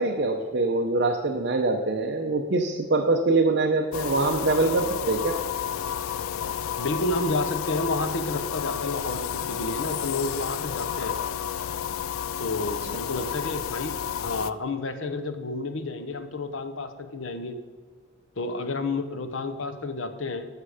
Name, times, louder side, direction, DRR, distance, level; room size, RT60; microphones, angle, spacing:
voice 1, 0.0-5.4 13.1-13.2, right 3 dB, 55° right, 2 dB, 0.7 m, -24 dB
sound 1, 3.9-14.5, left 9 dB, 90° left, 0.4 m, -31 dB
voice 2, 6.8-11.2 12.4-17.6 18.4-20.5, left 2 dB, 75° left, 9 dB, 0.9 m, -30 dB
11.5 x 6.6 x 5.0 m, 1.5 s
head